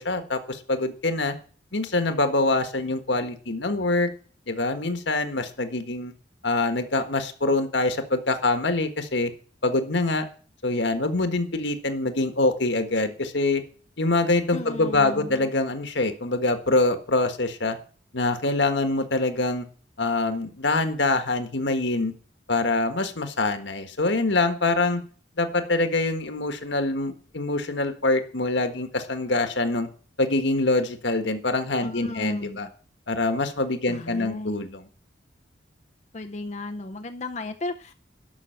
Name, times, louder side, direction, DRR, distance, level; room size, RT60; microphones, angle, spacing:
voice 1, 0.0-1.3 1.7-4.1 4.5-6.1 6.4-9.3 9.6-10.3 10.6-13.6 14.0-17.8 18.1-19.6 20.0-22.1 22.5-25.0 25.4-29.9 30.2-32.7 33.1-34.8, left 2 dB, 65° left, 8 dB, 1.5 m, -25 dB
voice 2, 14.5-15.5 31.8-32.7 33.9-34.7 36.1-37.9, left 2 dB, 35° left, 6 dB, 0.6 m, -35 dB
12.0 x 6.2 x 7.8 m, 0.42 s
head